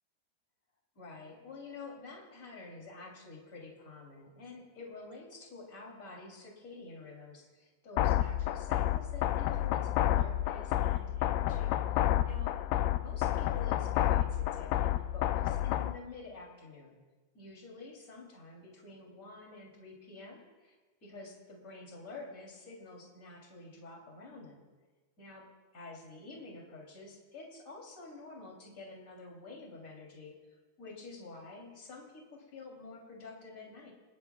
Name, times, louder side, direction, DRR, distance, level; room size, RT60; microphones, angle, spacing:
voice 1, 0.9-12.6 13.0-17.0 17.3-20.7 21.0-24.6 25.2-25.5 25.7-30.3 30.8-33.9, left 3 dB, 20° left, -1 dB, 3.1 m, -49 dB
sound 1, 8.0-16.0, left 13 dB, 80° left, 2.2 m, -30 dB
29.0 x 19.5 x 2.4 m, 1.3 s
omnidirectional pair, 4.5 m